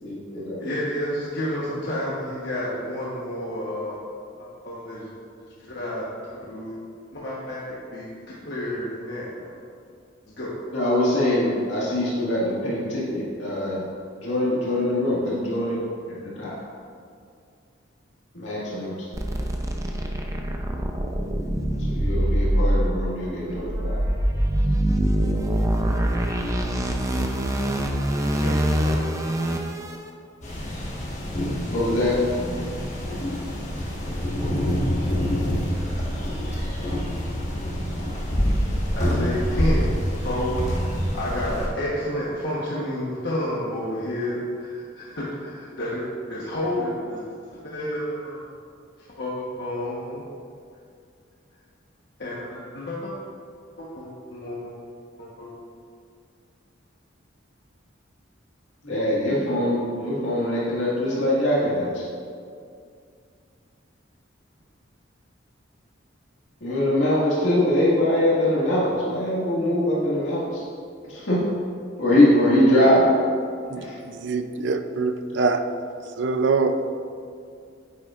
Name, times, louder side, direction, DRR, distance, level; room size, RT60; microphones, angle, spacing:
voice 1, 0.0-0.6 10.7-13.8 14.2-15.8 16.4-16.5 18.3-18.9 21.9-24.0 31.7-32.2 58.8-62.0 66.6-70.6 71.1-71.4 72.0-73.0 73.8-74.0, left 1 dB, 80° left, -7 dB, 1.9 m, -22 dB
voice 2, 0.6-4.0 4.4-5.1 5.6-6.0 6.4-6.8 7.1-9.5 10.4-10.5 28.3-29.0 38.9-40.6 40.8-46.0 46.3-47.2 47.6-48.4 49.2-50.2 52.2-53.1 53.8-54.7 55.2-55.5, left 1 dB, 60° left, -7 dB, 1.2 m, -30 dB
sound 1, 19.1-30.0, right 1 dB, 15° right, 0.5 m, -24 dB
sound 2, 30.4-41.7, equal, 35° left, 1.4 m, -26 dB
voice 3, 73.7-75.6 76.2-76.9, right 4 dB, 65° right, 8 dB, 0.5 m, -24 dB
9.2 x 8.3 x 2.5 m, 2.3 s
head